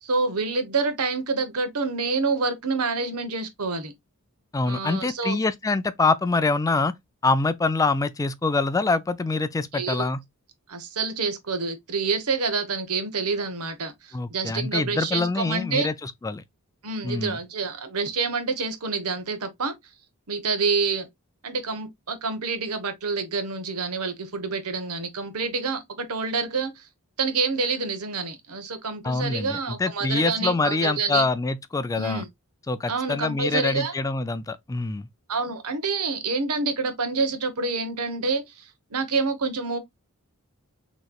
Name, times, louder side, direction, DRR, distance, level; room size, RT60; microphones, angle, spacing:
voice 1, 0.0-3.9 4.7-5.4 9.7-10.1 10.7-15.9 16.8-19.8 20.3-21.1 21.4-26.9 27.2-31.2 32.0-32.3 32.9-33.9 35.3-39.8, right 4 dB, 80° right, 1.0 m, -27 dB
voice 2, 4.5-6.9 7.2-10.2 14.1-16.4 17.0-17.4 29.0-32.2 32.7-35.1, left 3 dB, 15° left, 0.3 m, -25 dB
6.3 x 3.1 x 2.3 m
head